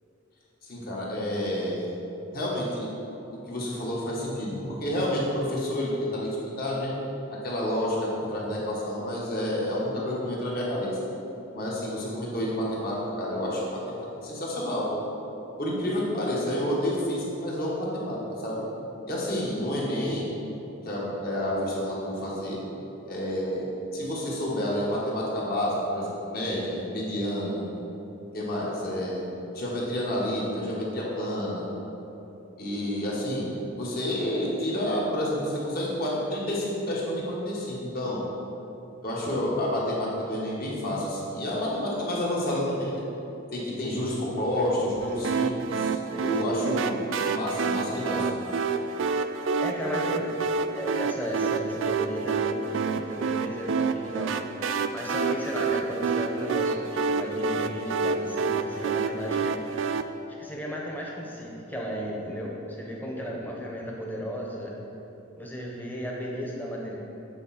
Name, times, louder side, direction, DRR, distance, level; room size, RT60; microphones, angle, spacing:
voice 1, 0.6-1.9 2.3-2.9 3.5-6.3 6.6-6.9 7.4-11.0 11.5-13.6 13.9-14.9 15.6-18.2 18.4-18.6 19.1-20.2 20.8-22.6 23.1-23.7 23.9-27.6 28.3-29.2 29.5-31.7 32.6-33.5 33.7-38.2 39.0-43.0 43.5-47.0 47.3-48.3, left 1 dB, 50° left, -5 dB, 1.5 m, -29 dB
sound 1, 45.2-60.0, right 5 dB, 65° right, 0.3 m, -28 dB
voice 2, 46.1-46.7 49.6-50.3 50.7-54.5 54.9-59.7 60.4-64.7 65.4-67.0, equal, 10° left, -3 dB, 0.9 m, -34 dB
8.2 x 4.2 x 4.3 m, 2.9 s
head